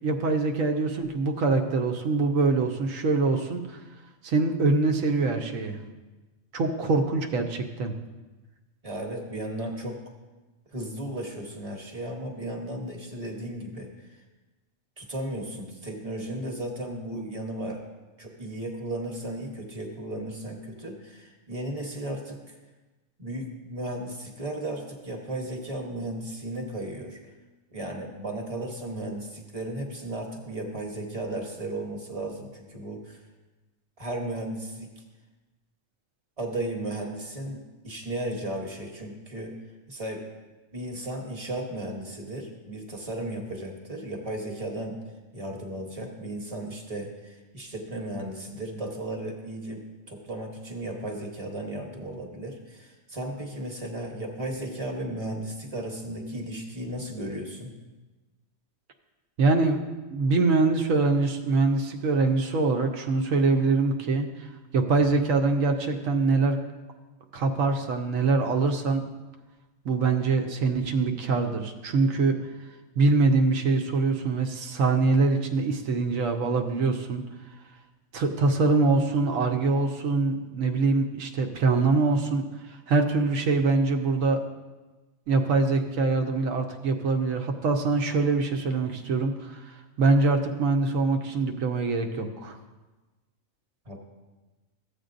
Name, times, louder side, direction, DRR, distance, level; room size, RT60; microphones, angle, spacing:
voice 1, 0.0-3.8 4.2-5.8 6.5-8.0 59.4-59.8 60.1-66.6 67.3-69.0 69.8-72.4 73.0-77.2 78.1-84.4 85.3-92.6, right 3 dB, 80° right, 5 dB, 1.1 m, -24 dB
voice 2, 8.8-10.0 10.7-14.2 15.0-17.8 18.2-22.6 23.2-27.2 27.7-33.2 34.0-35.0 36.4-39.5 39.9-40.3 40.7-45.0 45.3-57.7 93.8-94.0, right 1 dB, 30° right, 1 dB, 1.1 m, -35 dB
14.0 x 8.0 x 2.6 m, 1.2 s
omnidirectional pair, 1.4 m